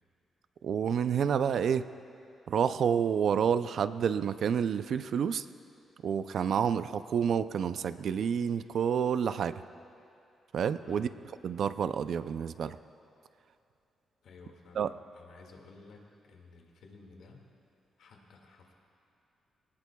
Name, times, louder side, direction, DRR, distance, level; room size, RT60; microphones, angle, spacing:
voice 1, 0.6-1.9 2.5-5.5 6.0-9.6 10.5-11.1 11.4-12.8 14.8-14.9, right 7 dB, 60° right, 13 dB, 0.4 m, -29 dB
voice 2, 10.8-11.1 14.2-17.5 18.0-18.7, left 3 dB, 80° left, 1 dB, 1.9 m, -54 dB
21.5 x 19.0 x 2.3 m, 2.7 s
wide cardioid pair, 155°, 0 cm